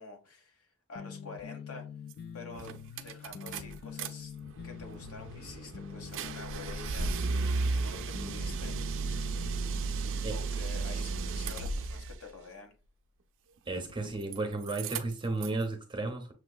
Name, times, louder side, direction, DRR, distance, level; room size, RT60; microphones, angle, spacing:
voice 1, 0.0-1.9 2.3-4.3 4.6-8.7 9.9-12.7, left 3 dB, 65° left, 1.2 m, -48 dB
sound 1, 1.0-10.6, left 7 dB, 45° left, 0.3 m, -45 dB
sound 2, 2.1-2.2 2.5-4.1 4.4-12.2 13.7-14.4 14.6-15.6, right 4 dB, 60° right, 0.5 m, -34 dB
voice 2, 13.7-16.3, right 2 dB, 20° right, 0.8 m, -33 dB
6.8 x 2.9 x 2.3 m
head